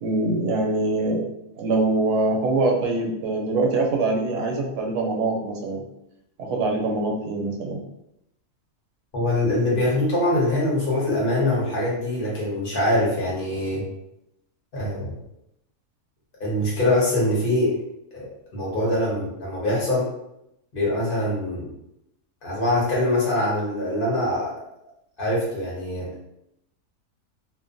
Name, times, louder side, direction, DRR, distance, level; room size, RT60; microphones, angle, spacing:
voice 1, 0.0-1.2 1.6-5.8 6.4-7.8, right 2 dB, 85° right, 0 dB, 1.1 m, -24 dB
voice 2, 9.1-13.8 14.7-15.1 16.4-17.8 18.1-20.1 20.7-21.7 22.4-24.5 25.2-26.1, left 1 dB, 40° left, -5 dB, 0.9 m, -23 dB
2.8 x 2.2 x 2.5 m, 0.81 s
omnidirectional pair, 1.6 m